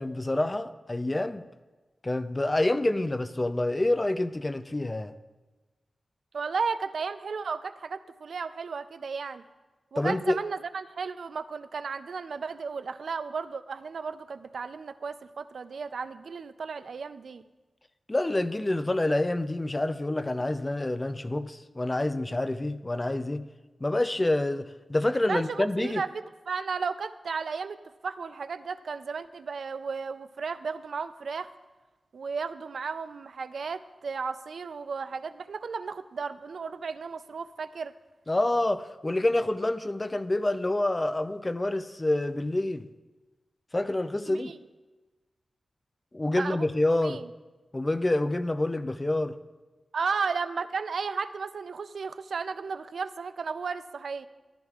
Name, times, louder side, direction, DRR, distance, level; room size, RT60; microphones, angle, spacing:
voice 1, 0.0-1.4 2.0-5.1 10.0-10.4 18.1-23.4 23.8-26.0 38.3-42.9 43.7-44.5 46.1-47.2 47.7-49.4, left 1 dB, 25° left, 11 dB, 0.4 m, -27 dB
voice 2, 6.3-9.4 9.9-17.4 25.3-27.8 28.0-31.5 32.1-37.9 44.3-44.5 46.4-47.3 49.9-54.3, right 5 dB, 80° right, 12 dB, 0.4 m, -34 dB
14.0 x 11.0 x 2.4 m, 1.2 s
wide cardioid pair, 80°, 0 cm